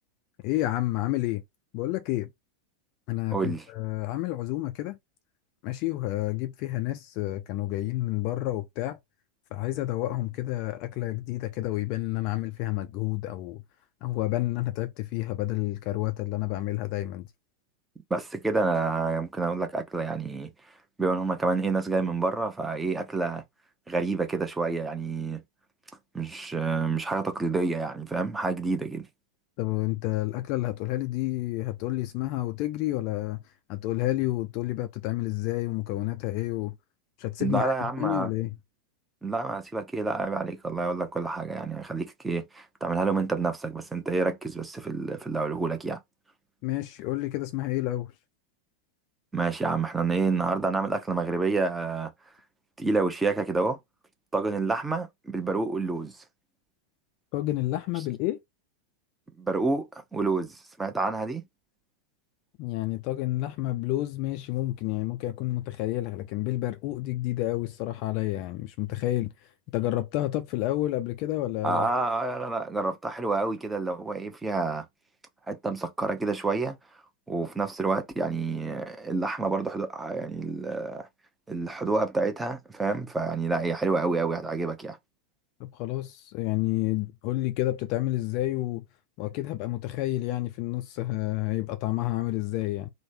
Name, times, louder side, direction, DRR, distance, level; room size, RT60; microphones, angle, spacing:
voice 1, 0.4-1.4 1.7-2.3 3.1-5.0 5.6-9.0 9.5-13.6 14.0-17.3 29.6-33.4 33.7-36.7 37.2-38.6 46.6-48.1 57.3-58.4 62.6-69.3 69.7-71.9 85.6-88.8 89.2-92.9, left 16 dB, 45° left, 0.4 m, -30 dB
voice 2, 3.3-3.7 18.1-20.5 21.0-23.4 23.9-25.4 26.1-29.1 37.4-38.3 39.2-46.0 49.3-52.1 52.8-53.8 54.3-56.2 59.4-61.4 71.6-74.8 75.5-76.8 77.3-81.1 81.5-85.0, right 3 dB, 10° right, 0.7 m, -28 dB
3.1 x 2.1 x 2.6 m
figure-of-eight pair, 90°, 0 cm